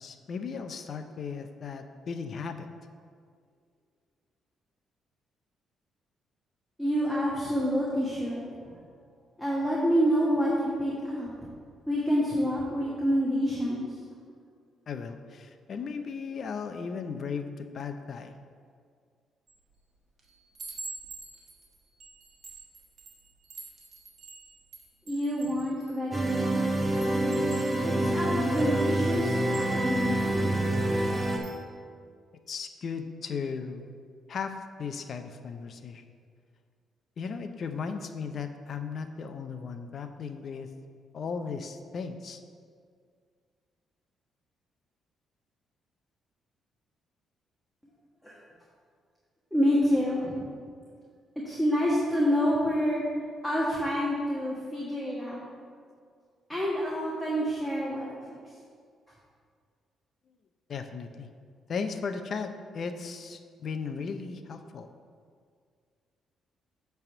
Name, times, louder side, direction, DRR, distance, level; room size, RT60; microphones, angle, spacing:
voice 1, 0.0-2.7 14.9-18.4 32.5-33.9 34.3-36.0 37.2-40.7 41.1-42.4 60.7-61.3 61.7-64.9, left 5 dB, 55° left, 8 dB, 0.5 m, -36 dB
voice 2, 6.8-8.7 9.4-11.3 11.9-13.9 25.1-26.6 27.8-30.9 48.2-48.3 49.5-50.5 51.4-53.0 53.4-55.4 56.5-58.4, equal, ahead, -6 dB, 1.4 m, -28 dB
Chime, 19.5-19.8 20.2-26.5 26.9-30.3 30.8-31.0 31.3-31.6, right 4 dB, 60° right, 1.4 m, -47 dB
sound 1, 26.1-31.4, right 1 dB, 15° right, 1.0 m, -27 dB
8.4 x 3.5 x 6.7 m, 2.1 s
cardioid pair, 90°, 0 cm